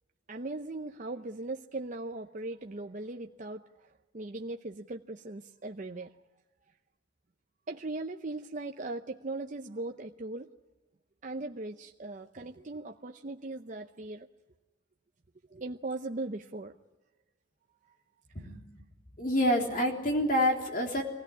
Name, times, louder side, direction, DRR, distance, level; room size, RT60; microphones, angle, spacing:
voice 1, 0.3-6.1 7.7-10.5 11.2-14.3 15.5-16.7 17.8-18.0, right 2 dB, 45° right, 4 dB, 0.7 m, -39 dB
voice 2, 19.2-21.0, left 1 dB, 45° left, 2 dB, 3.5 m, -27 dB
23.0 x 16.5 x 10.0 m, 1.1 s
head